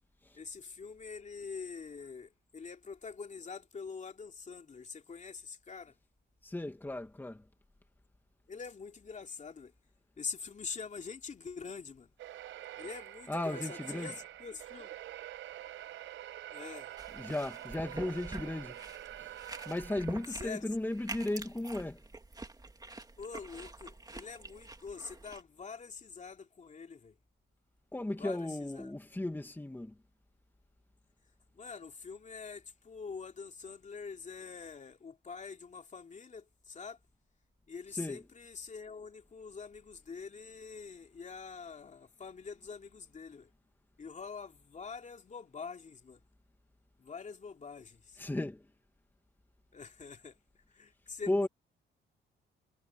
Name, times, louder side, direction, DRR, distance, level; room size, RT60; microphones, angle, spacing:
voice 1, 0.3-5.9 8.5-9.7 10.2-12.1 12.8-15.0 16.5-16.9 20.3-20.7 23.2-27.2 28.2-28.9 31.5-37.0 37.7-43.5 44.0-46.2 47.0-48.2 49.7-51.5, left 5 dB, 40° left, 3.0 m, -45 dB
voice 2, 6.4-7.4 13.3-14.1 17.1-18.8 19.2-19.3 19.7-22.0 27.9-29.9 37.9-38.2 48.2-48.6 51.3-51.5, left 1 dB, 10° left, 2.1 m, -35 dB
sound 1, 12.2-20.5, right 13 dB, 85° right, 4.7 m, -46 dB
sound 2, 17.0-25.4, right 3 dB, 20° right, 2.6 m, -47 dB
cardioid pair, 90°, 20 cm